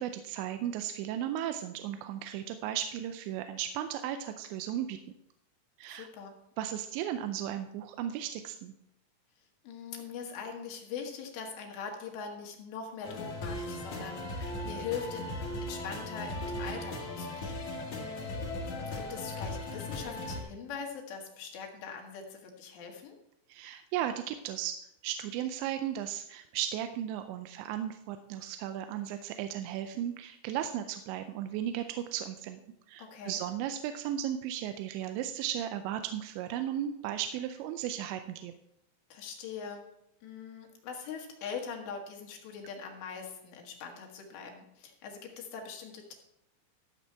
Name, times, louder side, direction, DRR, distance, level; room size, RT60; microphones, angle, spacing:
voice 1, 0.0-5.0 5.8-6.1 6.6-8.7 23.5-24.8 25.0-32.6 32.9-38.5, right 10 dB, 85° right, 8 dB, 2.7 m, -35 dB
voice 2, 5.9-6.3 9.7-15.3 15.6-17.7 18.6-23.2 33.0-33.4 39.1-39.8 40.2-46.2, left 6 dB, 70° left, 1 dB, 3.5 m, -42 dB
sound 1, 13.0-20.4, left 2 dB, 55° left, 2.4 m, -37 dB
13.0 x 7.1 x 4.5 m, 0.80 s
omnidirectional pair, 5.4 m